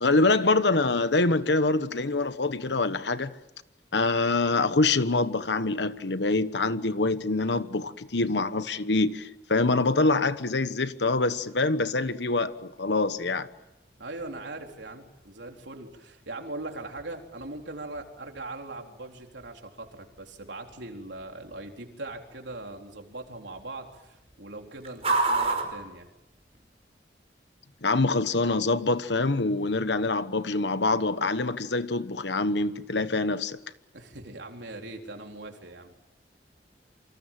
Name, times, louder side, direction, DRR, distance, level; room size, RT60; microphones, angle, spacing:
voice 1, 0.0-3.3 3.9-13.5 27.8-33.6, left 3 dB, 75° left, 1.2 m, -25 dB
sound 1, 12.0-26.9, right 3 dB, 35° right, 5.3 m, -37 dB
voice 2, 14.0-26.1 33.9-36.0, right 2 dB, 85° right, 3.9 m, -40 dB
28.0 x 25.5 x 7.6 m
head